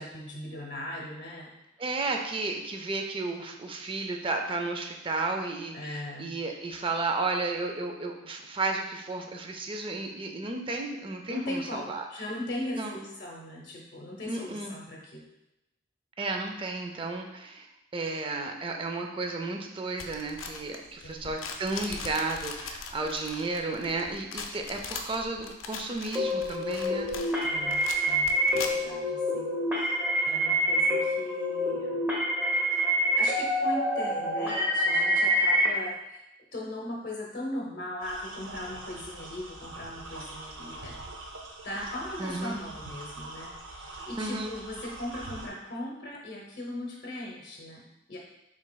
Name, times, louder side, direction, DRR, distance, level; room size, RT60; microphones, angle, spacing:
voice 1, 0.0-1.6 5.7-6.3 11.3-15.3 21.0-21.4 27.4-30.0 30.2-32.0 33.1-36.2 36.5-41.0 41.6-48.2, left 1 dB, 50° left, -2 dB, 0.7 m, -39 dB
voice 2, 1.8-12.0 12.7-13.0 14.3-14.7 16.2-17.7 17.9-27.1 42.2-42.6 44.2-44.5, right 3 dB, 25° right, 3 dB, 0.4 m, -33 dB
sound 1, 20.0-29.0, left 5 dB, 80° left, 0.4 m, -40 dB
sound 2, 26.1-35.7, equal, 10° right, 0.9 m, -26 dB
sound 3, 38.0-45.5, right 2 dB, 85° right, 0.6 m, -43 dB
5.1 x 3.6 x 2.3 m, 0.90 s
head